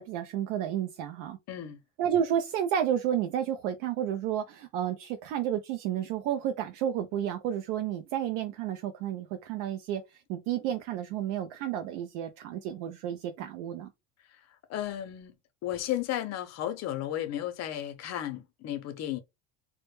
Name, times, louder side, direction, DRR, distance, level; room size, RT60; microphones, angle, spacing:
voice 1, 0.0-1.4 2.0-13.9, right 10 dB, 80° right, 0.5 m, -31 dB
voice 2, 1.5-1.8 14.7-15.3 15.6-19.2, left 12 dB, 45° left, 0.6 m, -34 dB
2.1 x 2.1 x 3.0 m
cardioid pair, 125°, 38 cm